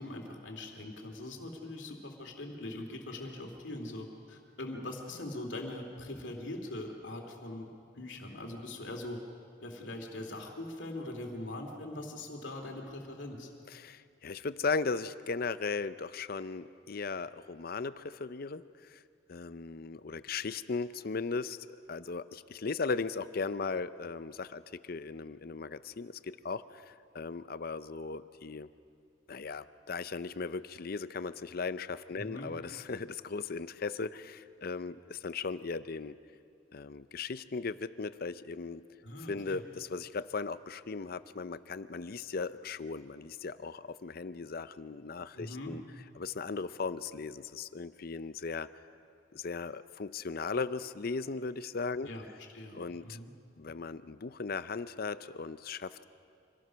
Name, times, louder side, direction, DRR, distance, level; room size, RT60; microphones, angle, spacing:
voice 1, 0.0-7.7 8.0-9.2 9.6-13.5 32.1-32.5 39.0-39.6 45.3-45.7 52.1-52.2 52.5-52.8 53.0-53.3, left 1 dB, 65° left, 2 dB, 2.6 m, -42 dB
voice 2, 13.7-19.0 19.3-28.7 29.3-36.1 36.7-38.8 39.3-45.8 46.2-48.7 49.3-52.1 52.7-53.2 53.6-56.0, left 4 dB, 50° left, 14 dB, 0.6 m, -37 dB
25.5 x 17.0 x 6.3 m, 2.4 s
head